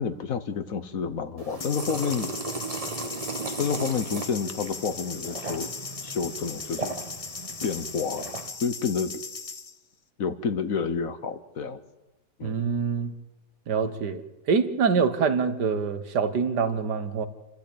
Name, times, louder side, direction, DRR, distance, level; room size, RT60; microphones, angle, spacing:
voice 1, 0.0-2.4 3.6-5.7 6.0-6.9 7.6-8.3 8.6-9.2 10.2-11.8 12.4-12.6, left 6 dB, 60° left, 1.4 m, -29 dB
sound 1, 1.4-8.5, right 3 dB, 25° right, 1.2 m, -37 dB
sound 2, 1.6-9.7, left 4 dB, 35° left, 0.6 m, -38 dB
voice 2, 12.4-13.1 13.7-14.2 14.5-17.3, right 5 dB, 80° right, 1.9 m, -25 dB
27.5 x 12.5 x 8.6 m
omnidirectional pair, 1.8 m